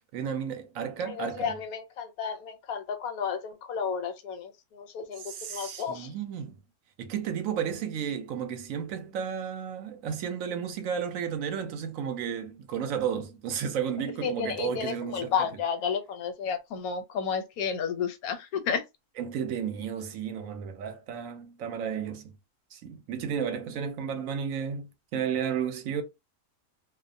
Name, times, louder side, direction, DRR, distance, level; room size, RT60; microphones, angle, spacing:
voice 1, 0.1-1.5 5.2-6.6 7.0-15.3 19.2-22.3 22.7-26.0, right 7 dB, 70° right, 0.9 m, -33 dB
voice 2, 1.0-5.2 5.5-6.1 14.2-18.8, left 7 dB, 80° left, 1.1 m, -32 dB
2.5 x 2.0 x 2.6 m
omnidirectional pair, 1.5 m